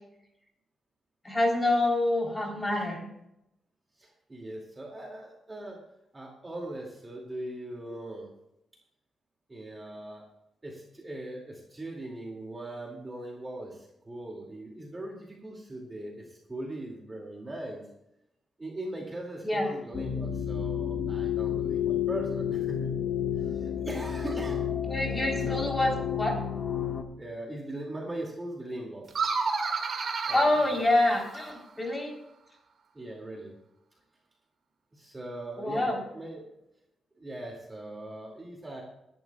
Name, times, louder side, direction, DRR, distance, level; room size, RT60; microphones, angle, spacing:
voice 1, 1.2-3.1 19.4-19.7 24.9-26.4 30.3-32.2 35.6-36.0, left 2 dB, 15° left, 0 dB, 3.7 m, -27 dB
voice 2, 4.0-5.8 6.1-8.3 9.5-10.2 10.6-17.8 18.6-22.8 23.4-24.6 25.4-25.7 27.2-29.1 30.2-30.8 32.9-33.5 34.9-36.6 37.2-38.8, right 1 dB, 15° right, -1 dB, 2.4 m, -40 dB
sound 1, 19.9-27.0, left 8 dB, 45° left, 1.2 m, -30 dB
sound 2, 29.1-31.6, right 4 dB, 45° right, 2.0 m, -31 dB
22.0 x 11.5 x 2.4 m, 0.83 s
wide cardioid pair, 155°, 0 cm